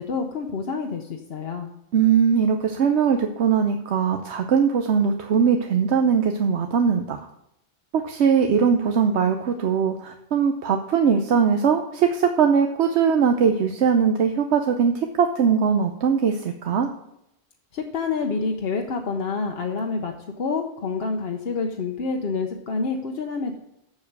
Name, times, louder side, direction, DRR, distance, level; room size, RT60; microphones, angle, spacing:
voice 1, 0.0-1.7 17.7-23.6, left 4 dB, 65° left, 3 dB, 1.0 m, -28 dB
voice 2, 1.9-7.2 7.9-16.9, right 6 dB, 85° right, 6 dB, 1.0 m, -20 dB
7.3 x 6.9 x 6.6 m, 0.81 s
omnidirectional pair, 1.1 m